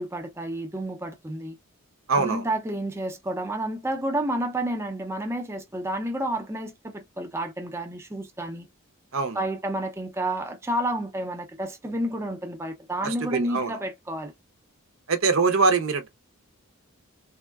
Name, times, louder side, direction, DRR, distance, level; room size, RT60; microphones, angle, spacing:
voice 1, 0.0-1.6 2.1-8.7 9.3-14.3, right 1 dB, 10° right, 0.5 m, -30 dB
voice 2, 2.1-2.5 9.1-9.4 13.0-13.8 15.1-16.1, right 4 dB, 65° right, 0.7 m, -23 dB
3.5 x 2.3 x 2.3 m
head